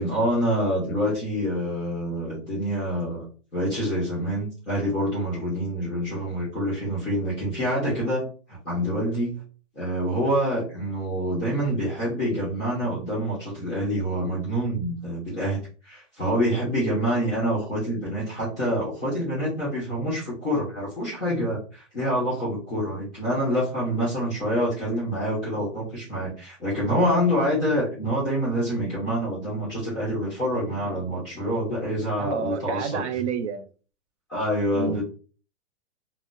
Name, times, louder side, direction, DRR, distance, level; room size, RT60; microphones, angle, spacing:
voice 1, 0.0-3.2 3.5-9.4 9.7-33.0 34.3-35.0, equal, ahead, -9 dB, 0.4 m, -26 dB
voice 2, 32.2-33.6 34.7-35.0, right 7 dB, 70° right, 10 dB, 0.5 m, -29 dB
3.6 x 2.1 x 2.5 m, 0.37 s
hypercardioid pair, 175°, 36 cm